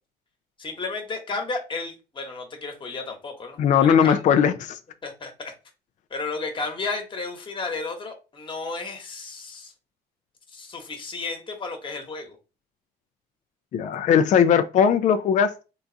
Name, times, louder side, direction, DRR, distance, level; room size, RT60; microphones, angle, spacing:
voice 1, 0.6-3.6 4.0-4.1 5.0-5.5 6.1-9.7 10.5-12.4, left 3 dB, 30° left, 1.2 m, -33 dB
voice 2, 3.6-4.8 13.7-15.6, left 7 dB, 45° left, 0.4 m, -19 dB
3.8 x 2.3 x 3.9 m
cardioid pair, 110°, 17 cm